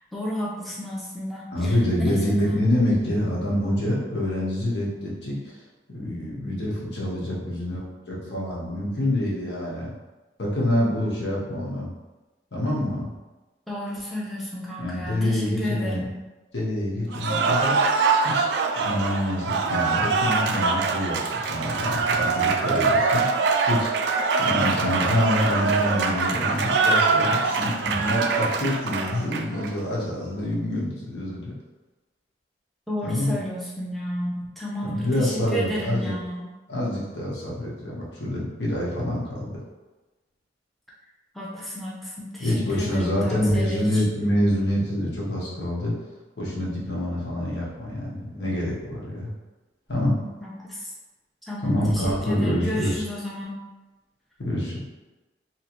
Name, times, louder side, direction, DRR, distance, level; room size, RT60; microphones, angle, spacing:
voice 1, 0.1-1.7 2.0-2.6 13.7-16.1 32.9-36.4 41.3-44.0 50.2-50.9 51.5-53.6, equal, ahead, -6 dB, 0.5 m, -32 dB
voice 2, 1.5-5.6 5.9-9.9 10.4-11.9 12.5-13.1 14.8-16.1 16.5-17.8 18.2-18.5 18.8-23.2 23.7-23.9 24.4-31.5 33.0-33.3 34.8-36.2 36.7-39.6 42.4-45.9 46.4-49.3 49.9-50.1 51.6-53.0 54.4-54.8, left 1 dB, 80° left, -5 dB, 1.1 m, -26 dB
Cheering / Applause, 17.1-29.7, right 4 dB, 75° right, 0.3 m, -23 dB
3.1 x 2.9 x 3.0 m, 1.2 s
head